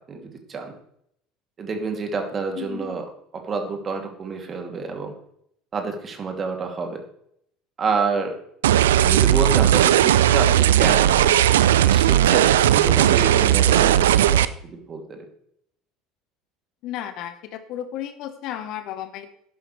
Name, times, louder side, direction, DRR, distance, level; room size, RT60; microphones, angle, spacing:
voice 1, 0.1-0.7 1.6-3.1 3.3-5.1 5.7-7.0 7.8-8.4 9.0-11.3 11.7-15.2, right 4 dB, 35° right, 4 dB, 2.8 m, -28 dB
sound 1, 8.6-14.4, right 11 dB, 70° right, 0.5 m, -17 dB
voice 2, 16.8-19.3, left 11 dB, 55° left, 10 dB, 1.3 m, -33 dB
12.0 x 11.0 x 3.3 m, 0.70 s
figure-of-eight pair, 65°, 0 cm